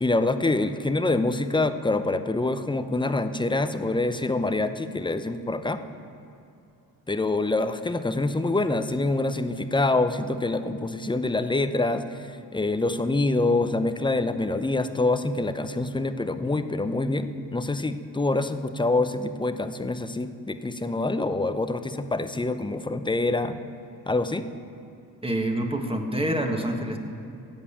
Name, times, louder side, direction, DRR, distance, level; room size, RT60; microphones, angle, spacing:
voice 1, 0.0-5.8 7.1-23.6 24.1-24.5, left 2 dB, 10° left, 10 dB, 0.7 m, -26 dB
voice 2, 25.2-27.0, right 1 dB, 15° right, 3 dB, 1.6 m, -27 dB
15.5 x 5.4 x 8.6 m, 2.6 s
supercardioid pair, 65°, 42 cm